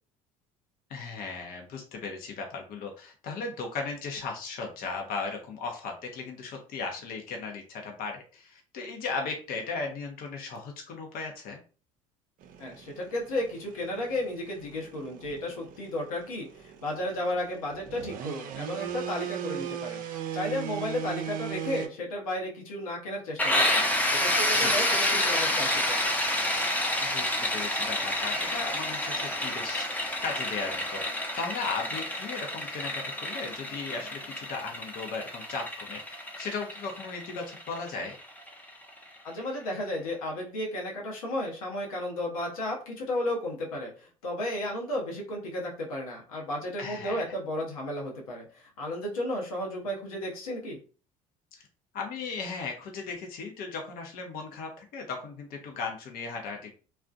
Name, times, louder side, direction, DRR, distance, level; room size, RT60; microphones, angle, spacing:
voice 1, 0.9-11.6 24.5-24.8 27.0-29.9 30.2-38.2 46.8-47.3 51.9-56.7, left 4 dB, 55° left, 2 dB, 0.7 m, -36 dB
sound 1, 12.4-21.9, right 10 dB, 50° right, 0.4 m, -39 dB
voice 2, 12.6-23.8 24.1-26.0 39.2-43.9 44.2-50.8, left 1 dB, 85° left, -1 dB, 0.8 m, -33 dB
sound 2, 23.4-39.0, left 1 dB, 10° left, 0.7 m, -29 dB
2.4 x 2.1 x 2.5 m, 0.37 s
hypercardioid pair, 70°, 18 cm